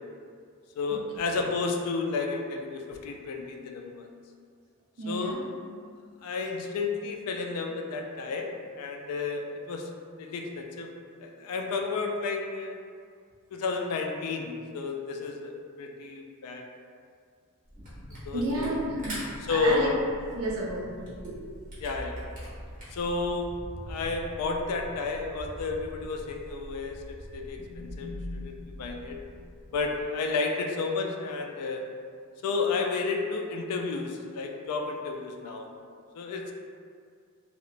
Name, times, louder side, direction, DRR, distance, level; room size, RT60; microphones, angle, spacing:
voice 1, 0.8-4.1 5.1-5.4 6.2-9.9 10.2-10.9 11.2-12.8 13.5-15.5 15.8-16.6 18.2-18.7 19.5-19.9 21.8-22.2 22.9-23.5 23.9-28.5 28.8-29.2 29.7-31.8 32.4-35.7 36.1-36.5, left 4 dB, 80° left, 2 dB, 0.3 m, -31 dB
voice 2, 5.0-5.4 18.3-19.2 19.5-19.9 20.3-20.9 21.2-21.4, right 1 dB, 65° right, -4 dB, 0.5 m, -31 dB
sound 1, 17.7-30.1, equal, 20° left, 1.3 m, -43 dB
Camera, 17.8-18.3 18.6-23.1, right 1 dB, 40° right, 0.8 m, -44 dB
2.8 x 2.0 x 2.5 m, 2.2 s
head